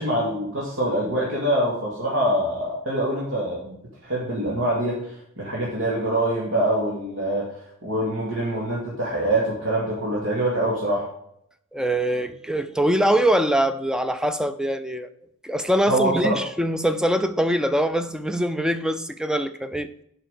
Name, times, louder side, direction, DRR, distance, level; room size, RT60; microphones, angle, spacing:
voice 1, 0.0-3.8 4.0-7.5 7.8-11.1 15.9-16.4, right 1 dB, 70° right, 2.4 m, -24 dB
voice 2, 11.7-15.1 15.4-19.9, right 1 dB, 5° right, 0.5 m, -23 dB
7.7 x 5.8 x 6.7 m
head